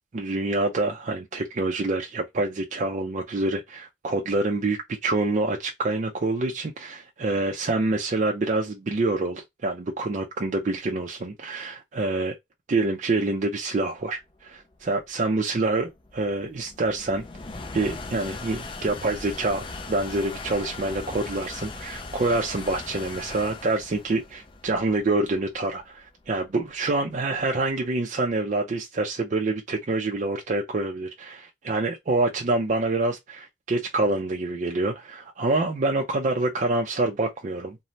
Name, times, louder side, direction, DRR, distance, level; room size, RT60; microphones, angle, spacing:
voice 1, 0.1-12.3 12.7-17.2 17.7-37.8, right 2 dB, 40° right, 0.4 m, -26 dB
sound 1, 14.4-27.7, left 3 dB, 25° left, 0.4 m, -39 dB
3.1 x 2.0 x 2.6 m
head